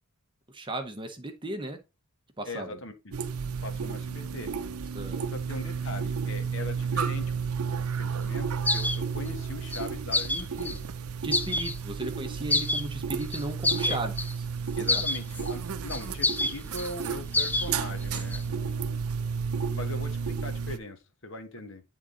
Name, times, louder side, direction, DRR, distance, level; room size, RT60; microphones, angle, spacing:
voice 1, 0.5-1.8 2.4-2.8 4.9-5.3 11.2-14.1 14.7-15.0, right 2 dB, 20° right, 0.8 m, -36 dB
voice 2, 2.4-3.2 3.6-4.5 5.3-8.5 8.7-10.8 11.4-11.6 13.9-14.0 14.8-19.0 19.3-21.8, left 2 dB, 60° left, 1.2 m, -40 dB
sound 1, 3.1-20.8, right 6 dB, 75° right, 0.6 m, -32 dB
sound 2, 8.7-9.0 9.7-9.8 10.1-10.8 11.3-11.8 12.5-12.8 13.2-14.3 14.9-15.5 15.9-16.9 17.3-17.7 18.0-18.4, left 2 dB, 5° left, 0.4 m, -27 dB
9.8 x 3.7 x 3.8 m
head